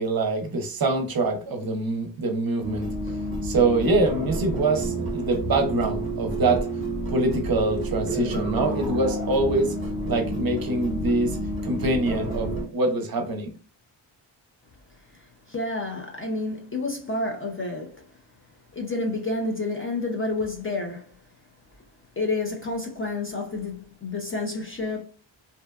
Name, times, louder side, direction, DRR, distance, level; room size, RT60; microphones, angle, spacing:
voice 1, 0.0-2.9 3.4-6.7 7.1-9.8 10.1-11.4 11.6-13.5, right 2 dB, 50° right, 0.5 m, -24 dB
sound 1, 2.6-12.6, right 1 dB, 25° right, 0.9 m, -30 dB
voice 2, 15.1-18.0 18.7-21.2 22.2-25.0, left 2 dB, 30° left, 0.3 m, -29 dB
2.6 x 2.2 x 2.3 m
wide cardioid pair, 175°, 46 cm